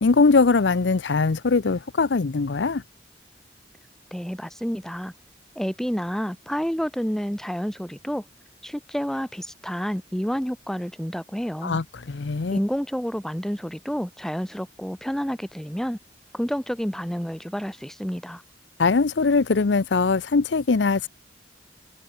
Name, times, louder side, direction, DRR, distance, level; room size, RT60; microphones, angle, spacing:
voice 1, 0.0-2.8 11.6-12.6 18.8-21.1, left 4 dB, 85° left, 0.6 m, -21 dB
voice 2, 4.1-5.1 5.6-8.2 8.6-11.8 12.5-16.0 16.3-18.4, equal, 5° left, 0.9 m, -29 dB
head